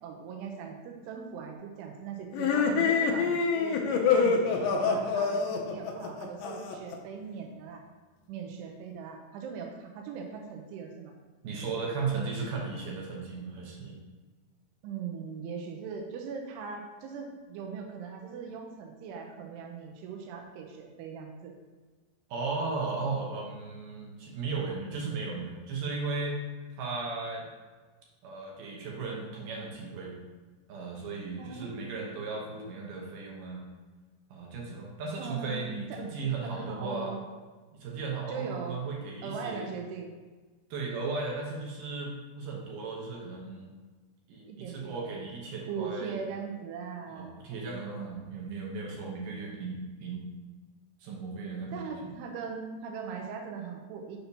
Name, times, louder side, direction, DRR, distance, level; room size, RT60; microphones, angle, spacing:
voice 1, 0.0-3.8 4.1-7.8 8.3-11.1 14.8-21.5 31.4-32.1 35.2-36.0 36.4-37.2 38.3-38.8 39.2-40.1 44.5-45.3 45.7-48.2 51.7-54.2, right 6 dB, 90° right, 2 dB, 2.7 m, -40 dB
sound 1, 2.3-7.0, left 5 dB, 85° left, 2.0 m, -26 dB
voice 2, 11.4-14.0 22.3-26.4 26.8-27.4 28.2-30.2 30.7-33.6 34.3-37.1 37.7-39.7 40.7-43.7 44.3-46.2 47.1-50.2 51.0-51.8, right 4 dB, 70° right, -2 dB, 2.1 m, -36 dB
6.7 x 5.8 x 2.7 m, 1.3 s
omnidirectional pair, 4.7 m